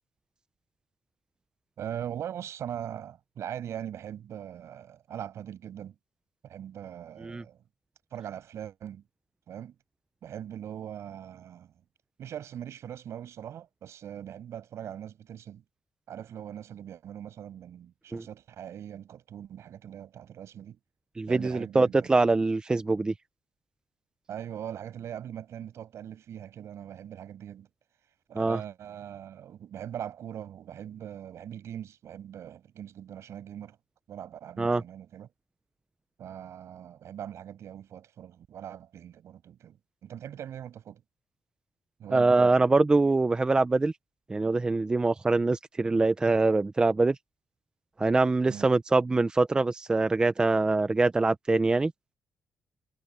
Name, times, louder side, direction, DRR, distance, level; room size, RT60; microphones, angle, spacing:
voice 1, 1.8-6.0 6.4-7.6 8.1-9.0 9.5-9.8 10.2-11.7 12.2-15.6 16.1-20.8 21.3-22.1 24.3-27.7 28.3-33.8 34.1-35.3 36.2-41.0 42.0-42.5 48.5-48.7, right 10 dB, 65° right, 6.9 m, -41 dB
voice 2, 21.2-23.1 28.4-28.6 34.6-34.8 42.1-43.9 44.3-47.2 48.0-51.9, right 3 dB, 15° right, 0.5 m, -24 dB
cardioid pair, 155°, 5 cm